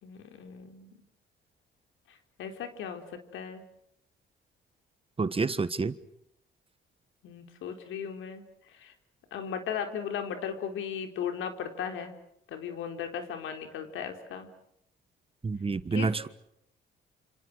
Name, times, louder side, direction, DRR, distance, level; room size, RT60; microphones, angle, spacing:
voice 1, 0.0-0.9 2.4-3.0 3.3-3.6 7.2-8.4 8.8-8.9 9.3-12.1 12.5-14.5 15.9-16.3, left 7 dB, 85° left, 4.4 m, -36 dB
voice 2, 5.2-6.0 15.4-16.3, right 4 dB, 30° right, 1.4 m, -28 dB
29.5 x 27.0 x 6.5 m
cardioid pair, 90°, 20 cm